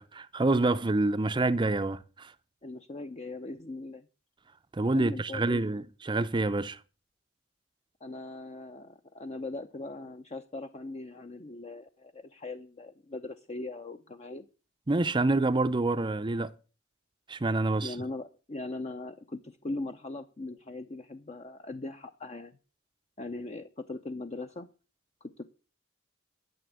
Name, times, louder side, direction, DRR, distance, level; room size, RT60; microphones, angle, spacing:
voice 1, 0.0-2.3 4.7-6.8 14.9-16.5 17.3-17.9, right 2 dB, 25° right, 0.5 m, -27 dB
voice 2, 2.6-4.1 4.9-5.7 8.0-14.5 17.8-22.6 23.2-24.7 25.2-25.4, left 2 dB, 35° left, 0.7 m, -40 dB
12.5 x 7.0 x 8.0 m
head